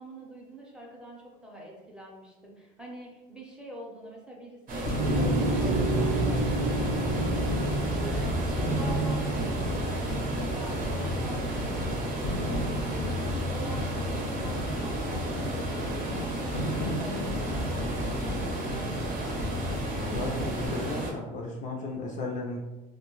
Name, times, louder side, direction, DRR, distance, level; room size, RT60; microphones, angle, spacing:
voice 1, 0.0-19.4, right 1 dB, 5° right, -3 dB, 0.6 m, -45 dB
sound 1, 4.7-21.1, right 2 dB, 45° right, 0.7 m, -33 dB
sound 2, 4.8-20.7, left 1 dB, 85° left, 0.7 m, -34 dB
sound 3, 5.0-11.2, right 1 dB, 85° right, 0.4 m, -30 dB
voice 2, 20.0-22.6, left 2 dB, 40° left, -1 dB, 0.4 m, -35 dB
2.2 x 2.1 x 3.0 m, 1.1 s
cardioid pair, 110°, 19 cm